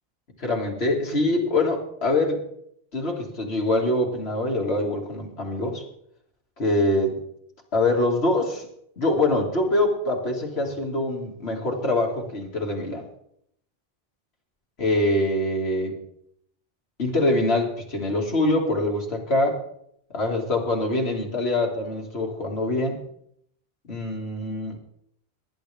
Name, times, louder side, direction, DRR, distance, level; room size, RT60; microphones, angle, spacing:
voice 1, 0.4-2.4 2.9-5.8 6.6-7.2 7.7-8.7 9.0-13.0 14.8-16.0 17.0-19.6 20.1-23.0 23.8-24.8, left 2 dB, 90° left, 1 dB, 2.4 m, -24 dB
19.5 x 10.5 x 3.4 m, 0.71 s
omnidirectional pair, 1.0 m